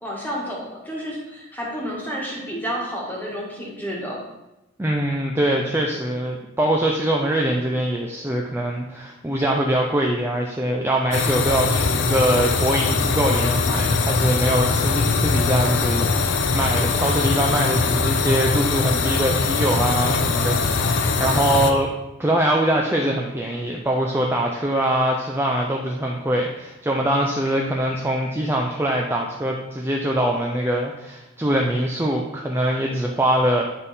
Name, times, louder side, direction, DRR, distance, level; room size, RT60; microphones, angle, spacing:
voice 1, 0.0-4.2, equal, 10° left, -4 dB, 1.5 m, -30 dB
voice 2, 4.8-21.9 22.2-33.6, right 1 dB, 10° right, -1 dB, 0.4 m, -23 dB
sound 1, 11.1-21.7, left 4 dB, 60° left, 0.5 m, -21 dB
9.1 x 3.5 x 4.1 m, 0.96 s
head